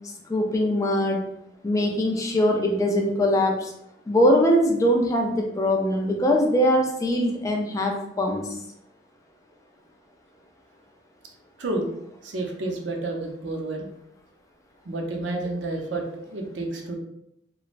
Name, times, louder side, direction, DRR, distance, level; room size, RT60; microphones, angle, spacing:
voice 1, 0.3-1.2 1.6-3.7 4.1-8.5, equal, 15° left, 1 dB, 0.3 m, -22 dB
voice 2, 12.2-13.9 14.9-17.0, right 2 dB, 70° right, 1 dB, 0.5 m, -30 dB
3.1 x 2.0 x 2.4 m, 0.78 s
head